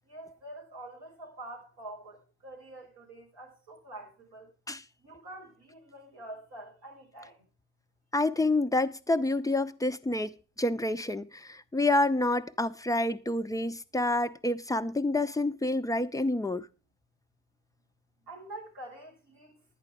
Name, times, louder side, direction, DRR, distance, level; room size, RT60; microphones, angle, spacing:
voice 1, 0.1-4.5 5.0-7.4 18.2-19.6, right 1 dB, 55° right, 5.1 m, -46 dB
voice 2, 8.1-10.3 10.6-16.7, left 2 dB, 5° left, 0.7 m, -28 dB
10.5 x 9.7 x 4.9 m
figure-of-eight pair, 45°, 46 cm